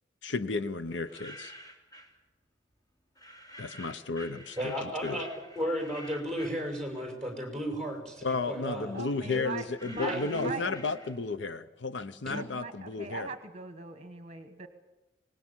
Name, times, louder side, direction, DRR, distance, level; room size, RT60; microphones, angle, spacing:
voice 1, 0.2-1.5 3.6-4.6 4.8-5.2 8.2-13.3, left 3 dB, 75° left, 12 dB, 0.8 m, -33 dB
sound 1, 0.9-2.2 3.2-7.4 7.8-11.5, equal, 20° left, 3.1 m, -50 dB
voice 2, 4.6-5.3 5.6-9.5 9.9-10.5 12.3-12.4, equal, 5° left, 2 dB, 6.0 m, -34 dB
voice 3, 8.9-11.0 12.2-14.7, right 3 dB, 35° right, 8 dB, 1.3 m, -41 dB
25.0 x 20.0 x 7.4 m, 1.0 s
head